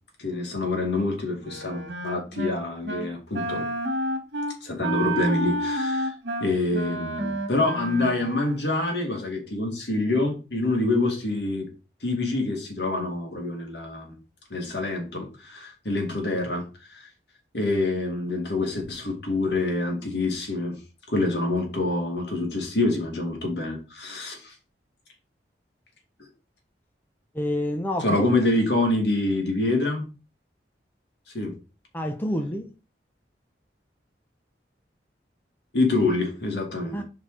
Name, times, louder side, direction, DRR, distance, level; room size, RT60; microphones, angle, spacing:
voice 1, 0.2-3.7 4.6-6.1 6.4-11.7 12.0-14.2 14.5-16.6 16.9-17.1 17.5-20.8 21.1-24.5 28.0-30.0 31.3-31.5 35.7-37.0, left 2 dB, 70° left, 2.3 m, -26 dB
Wind instrument woodwind instrument, 1.4-2.5 2.8-3.1 3.3-8.6, right 1 dB, 75° right, 1.7 m, -30 dB
voice 2, 27.3-28.3 31.9-32.7 36.9-37.0, left 1 dB, 10° left, 0.8 m, -28 dB
5.1 x 4.6 x 5.0 m
head